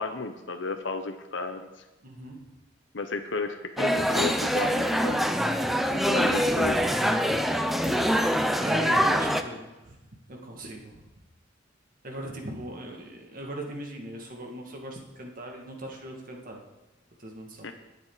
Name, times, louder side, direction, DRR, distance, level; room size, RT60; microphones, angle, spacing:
voice 1, 0.0-1.7 2.9-5.2 5.9-6.8 17.6-17.7, left 3 dB, 65° left, 6 dB, 0.8 m, -33 dB
voice 2, 2.0-2.4 7.8-8.1 8.5-10.0 10.3-11.1 12.0-16.6 17.2-17.7, right 1 dB, 45° right, 1 dB, 2.1 m, -39 dB
sound 1, 3.8-9.4, equal, ahead, 0.6 m, -24 dB
21.0 x 7.8 x 4.1 m, 1.1 s
head